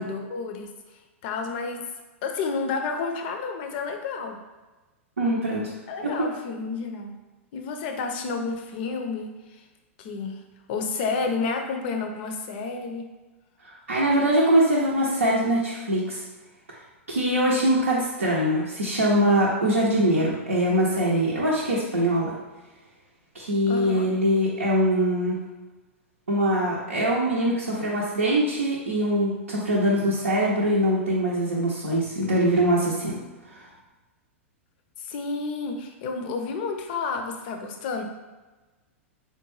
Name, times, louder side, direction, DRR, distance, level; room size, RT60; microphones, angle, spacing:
voice 1, 0.0-1.8 2.2-4.4 5.9-7.2 7.5-9.7 10.0-10.4 10.7-13.0 23.7-24.1 35.0-38.0, left 4 dB, 45° left, 5 dB, 0.5 m, -30 dB
voice 2, 5.2-5.7 6.0-6.3 13.6-16.2 17.1-22.3 23.3-25.4 26.3-33.2 33.4-33.7, right 1 dB, 80° right, -6 dB, 0.5 m, -23 dB
3.7 x 2.2 x 3.1 m, 1.2 s
figure-of-eight pair, 100°, 7 cm